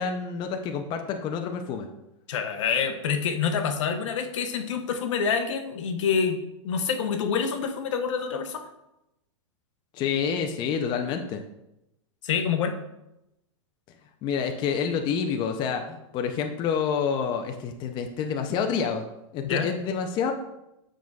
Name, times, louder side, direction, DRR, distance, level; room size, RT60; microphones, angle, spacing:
voice 1, 0.0-1.9 9.9-11.4 14.2-19.1 19.3-20.3, left 6 dB, 30° left, 5 dB, 0.5 m, -28 dB
voice 2, 2.3-6.4 6.6-8.6 12.2-12.7 19.4-19.7, left 6 dB, 75° left, 6 dB, 0.8 m, -27 dB
7.3 x 6.1 x 2.3 m, 0.88 s
hypercardioid pair, 140°, 16 cm